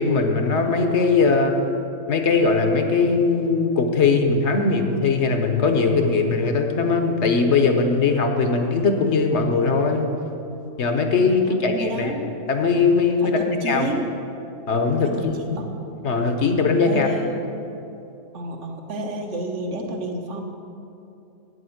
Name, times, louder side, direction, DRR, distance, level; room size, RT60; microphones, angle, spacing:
voice 1, 0.0-1.5 2.1-10.1 10.8-12.1 12.5-13.9 14.7-15.6 16.0-17.1, left 4 dB, 60° left, 5 dB, 1.2 m, -20 dB
voice 2, 11.4-12.3 13.2-14.1 15.0-15.8 16.8-17.3 18.3-20.4, right 2 dB, 65° right, 3 dB, 1.4 m, -31 dB
9.1 x 7.9 x 7.8 m, 2.7 s
omnidirectional pair, 1.3 m